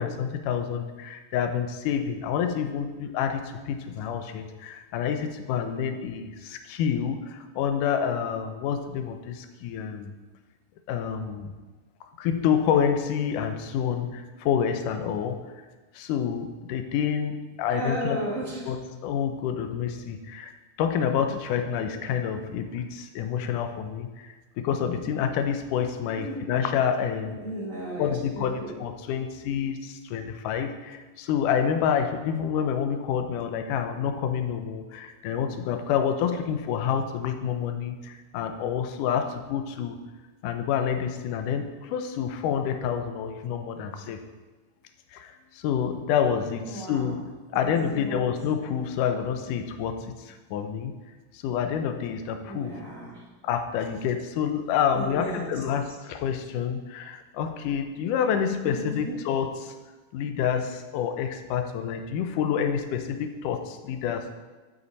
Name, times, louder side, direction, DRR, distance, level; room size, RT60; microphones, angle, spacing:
voice 1, 0.0-10.1 10.9-11.5 12.2-15.4 15.9-18.2 18.7-20.5 20.8-27.4 28.0-40.0 40.4-44.2 45.1-50.9 51.3-52.8 53.4-59.7 60.1-64.4, left 8 dB, 75° left, 7 dB, 2.2 m, -28 dB
voice 2, 17.7-18.6 26.1-26.6 27.4-28.8 46.6-47.0 47.5-48.3 52.5-53.2 54.9-55.6 58.6-59.2, right 1 dB, 35° right, -4 dB, 1.3 m, -35 dB
12.0 x 8.6 x 4.1 m, 1.2 s
omnidirectional pair, 4.0 m